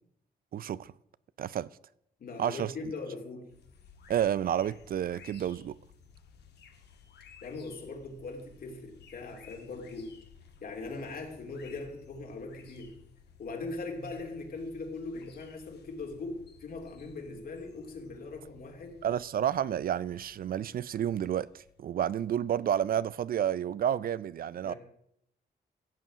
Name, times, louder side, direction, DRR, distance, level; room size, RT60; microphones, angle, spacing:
voice 1, 0.5-0.9 1.4-1.7 2.4-2.7 4.1-5.8 19.0-24.7, right 10 dB, 60° right, 0.4 m, -30 dB
voice 2, 2.2-3.5 7.4-10.1 10.6-12.9 13.4-19.0 24.6-24.8, left 3 dB, 60° left, 3.0 m, -40 dB
sound 1, 3.5-22.9, left 6 dB, 85° left, 1.8 m, -57 dB
15.5 x 7.3 x 6.2 m
cardioid pair, 110°, 17 cm